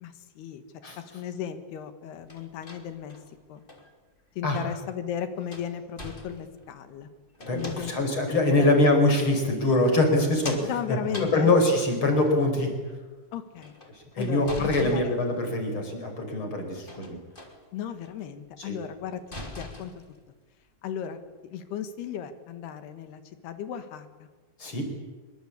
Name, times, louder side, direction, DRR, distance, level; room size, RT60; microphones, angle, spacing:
voice 1, 0.0-0.6 1.0-3.2 3.5-3.6 4.4-7.1 7.5-7.9 8.5-8.7 10.6-11.5 13.3-13.7 14.2-15.1 17.7-19.2 19.6-19.9 20.8-24.3, left 9 dB, 85° left, 9 dB, 3.7 m, -35 dB
sound 1, 2.3-3.9 4.8-4.9 5.4-6.7 7.3-8.2 8.9-9.0 10.0-12.3 13.5-15.6 16.8-17.6 18.0-18.3 18.7-18.8 19.1-20.2, left 1 dB, 15° left, 2.7 m, -43 dB
voice 2, 7.4-12.7 14.2-17.2 18.7-18.8 24.6-24.8, left 2 dB, 30° left, 4 dB, 5.4 m, -24 dB
25.5 x 23.0 x 8.5 m, 1.3 s
omnidirectional pair, 4.5 m